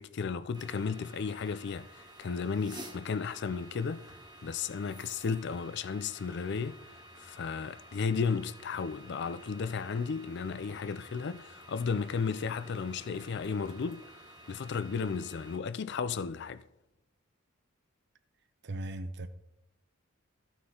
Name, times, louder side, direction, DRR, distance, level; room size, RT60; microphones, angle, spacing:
voice 1, 0.0-4.2 4.4-16.6, left 5 dB, 55° left, 0.4 m, -34 dB
sound 1, 0.5-15.6, right 1 dB, 20° right, 1.5 m, -52 dB
Typing, 8.4-10.1 10.4-14.4, equal, 35° left, 2.5 m, -56 dB
voice 2, 18.6-19.3, right 1 dB, 55° right, 0.8 m, -37 dB
14.5 x 6.2 x 3.8 m
head